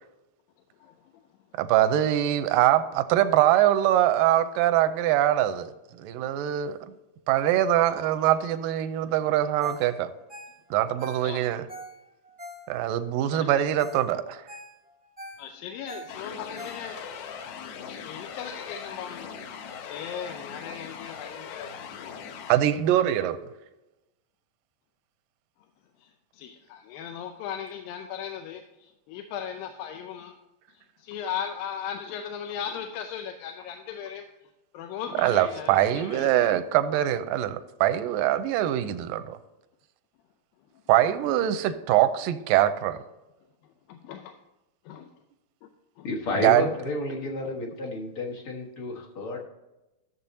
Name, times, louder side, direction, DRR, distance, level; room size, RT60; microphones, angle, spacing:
voice 1, 1.6-5.7 6.0-6.8 7.3-10.1 10.7-11.6 12.7-14.4 22.5-23.4 35.2-39.4 40.9-43.0 46.4-46.6, right 12 dB, 85° right, 10 dB, 2.2 m, -23 dB
Ringtone, 9.6-9.9 10.1-13.0 13.5-13.6 13.8-14.1 14.3-17.2 17.6-17.7, left 1 dB, 15° right, 0.3 m, -44 dB
voice 2, 15.4-17.1 17.8-19.3 19.8-22.2 26.0-26.1 26.3-30.3 31.0-34.2 34.7-36.3 43.9-44.3 44.9-45.1 45.6-45.7 46.0-46.1, left 8 dB, 90° left, 6 dB, 2.4 m, -37 dB
sound 1, 16.1-22.5, left 7 dB, 70° left, 1.9 m, -40 dB
voice 3, 46.0-49.4, left 2 dB, 50° left, -1 dB, 1.8 m, -31 dB
13.5 x 7.3 x 2.8 m, 1.0 s
omnidirectional pair, 4.0 m